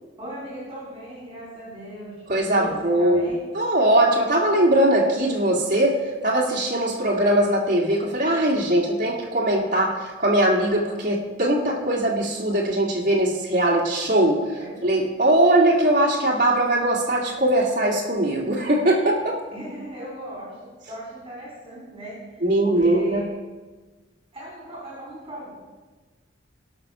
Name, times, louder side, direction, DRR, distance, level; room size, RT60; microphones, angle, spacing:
voice 1, 0.2-3.4 14.6-15.0 19.5-23.3 24.3-25.5, right 1 dB, 25° right, -6 dB, 4.1 m, -38 dB
voice 2, 2.3-19.4 22.4-23.2, right 1 dB, 45° right, -4 dB, 2.1 m, -21 dB
18.0 x 6.2 x 5.7 m, 1.3 s
head